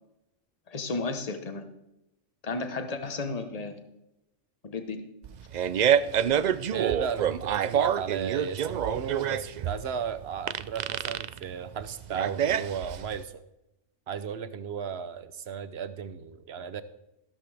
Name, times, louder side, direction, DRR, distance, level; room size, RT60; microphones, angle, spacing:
voice 1, 0.7-1.7 2.4-3.8 4.6-5.0, left 3 dB, 30° left, 8 dB, 1.1 m, -33 dB
Fart, 5.2-13.2, right 9 dB, 80° right, 0.4 m, -27 dB
voice 2, 6.7-13.4 14.1-16.8, right 7 dB, 60° right, 13 dB, 1.0 m, -35 dB
15.0 x 13.0 x 3.4 m, 0.87 s
omnidirectional pair, 1.3 m